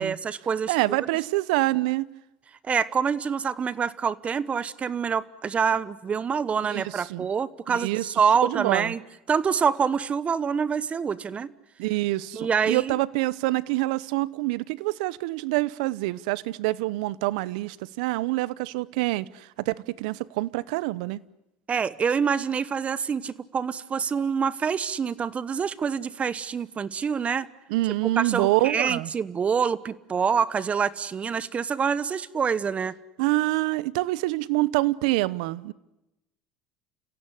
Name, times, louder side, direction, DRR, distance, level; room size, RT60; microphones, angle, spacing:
voice 1, 0.0-1.1 2.6-9.0 9.3-11.5 12.3-12.9 21.7-27.5 28.2-32.9, right 6 dB, 30° right, 18 dB, 1.1 m, -26 dB
voice 2, 0.7-2.1 6.7-7.3 7.7-8.1 8.4-8.9 11.8-21.2 27.7-29.1 33.2-35.7, right 19 dB, 80° right, 21 dB, 0.8 m, -26 dB
29.5 x 16.5 x 9.9 m, 0.94 s
supercardioid pair, 100°, 4 cm